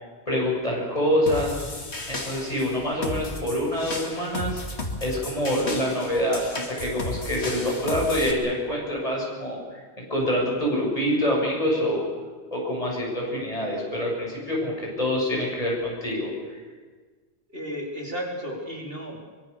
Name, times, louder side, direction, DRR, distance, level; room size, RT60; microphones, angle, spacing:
voice 1, 0.3-1.5 2.1-4.6 5.0-12.0 12.5-16.6, equal, 35° left, -2 dB, 7.8 m, -26 dB
sound 1, 1.3-8.3, left 2 dB, 80° left, 2.9 m, -34 dB
voice 2, 17.5-19.2, equal, 60° right, 0 dB, 4.3 m, -33 dB
24.5 x 23.5 x 7.1 m, 1.4 s
omnidirectional pair, 1.1 m